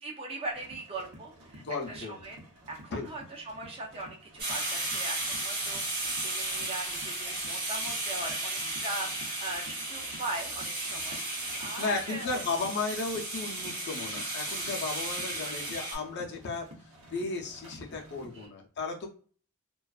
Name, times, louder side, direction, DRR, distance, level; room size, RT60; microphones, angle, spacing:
voice 1, 0.0-1.6 1.9-2.4 2.7-12.4 15.3-15.7 18.3-18.5, right 2 dB, 25° right, -1 dB, 0.4 m, -40 dB
sound 1, 0.5-18.5, right 1 dB, 80° right, 0.7 m, -52 dB
voice 2, 1.5-2.2 2.9-3.1 11.8-16.7 17.1-19.1, left 3 dB, 50° left, 1 dB, 0.5 m, -34 dB
sound 2, 4.4-16.0, right 2 dB, 40° right, 1.0 m, -34 dB
2.4 x 2.3 x 2.3 m, 0.43 s
head